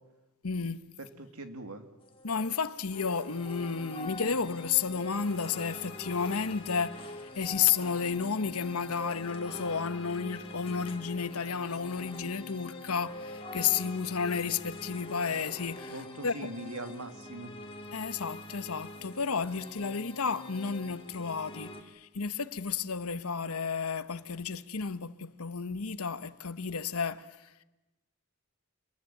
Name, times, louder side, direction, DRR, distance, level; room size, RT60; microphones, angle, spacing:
voice 1, 0.4-0.8 2.2-16.0 16.2-16.5 17.9-27.2, left 6 dB, 80° left, 1.1 m, -32 dB
voice 2, 1.0-1.8 15.9-17.5, right 2 dB, 75° right, 2.6 m, -42 dB
sound 1, 2.0-21.8, left 2 dB, 25° left, 2.8 m, -44 dB
27.0 x 22.0 x 9.1 m
head